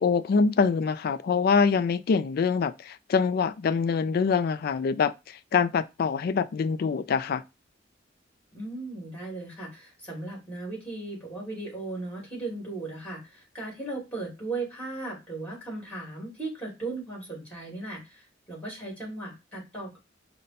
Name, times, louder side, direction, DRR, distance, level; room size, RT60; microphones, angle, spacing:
voice 1, 0.0-7.4, left 5 dB, 55° left, 0.3 m, -25 dB
voice 2, 8.5-20.0, right 2 dB, 10° left, 2.3 m, -37 dB
5.2 x 2.2 x 4.1 m
head